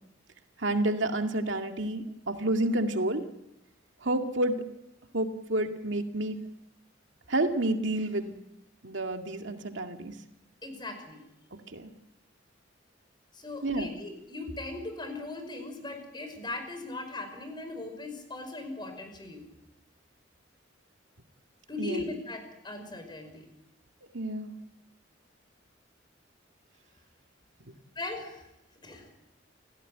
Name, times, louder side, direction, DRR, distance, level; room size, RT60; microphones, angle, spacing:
voice 1, 0.6-3.3 4.0-4.7 5.1-6.4 7.3-8.4 8.8-10.2 11.5-11.9 13.6-13.9 21.8-22.0 24.1-24.5 27.6-27.7, right 1 dB, 75° right, 5 dB, 2.2 m, -29 dB
voice 2, 10.6-11.2 13.3-19.5 21.7-23.4 28.0-28.5 28.8-29.1, left 2 dB, 25° left, 6 dB, 5.5 m, -39 dB
29.0 x 16.5 x 9.3 m, 0.84 s
head